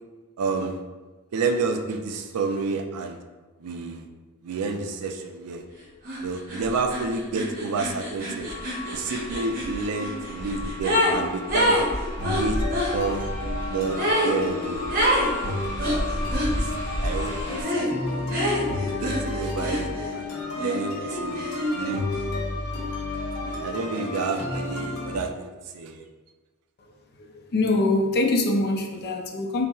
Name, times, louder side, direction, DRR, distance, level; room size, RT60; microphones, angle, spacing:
voice 1, 0.4-0.8 1.3-3.2 3.6-4.1 4.4-5.6 6.2-8.5 8.9-11.8 12.2-12.6 12.9-13.2 13.7-14.8 15.5-16.2 16.5-18.4 19.0-22.4 23.4-25.5 25.7-26.0, right 4 dB, 80° right, 6 dB, 0.4 m, -30 dB
sound 1, 6.1-6.2 6.5-11.2 11.5-13.0 14.0-14.4 14.9-15.3 15.8-16.5 17.6-17.9 18.3-20.2 20.6-21.9, equal, 40° right, 0.7 m, -27 dB
sound 2, 8.5-17.6, equal, 10° right, 0.9 m, -33 dB
sound 3, 12.2-25.2, left 2 dB, 75° left, 0.8 m, -31 dB
voice 2, 27.2-29.7, left 2 dB, 45° left, 2 dB, 0.4 m, -24 dB
5.3 x 2.0 x 2.3 m, 1.2 s
head